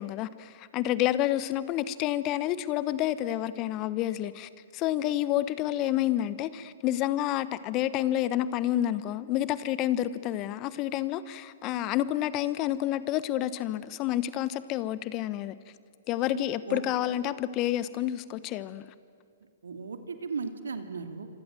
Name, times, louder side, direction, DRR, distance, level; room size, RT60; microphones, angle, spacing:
voice 1, 0.0-15.5 16.1-18.9, left 13 dB, 35° left, 1.1 m, -29 dB
voice 2, 16.3-16.8 19.6-21.3, right 5 dB, 80° right, 2.7 m, -36 dB
28.0 x 26.0 x 7.7 m
hypercardioid pair, 120°, 0 cm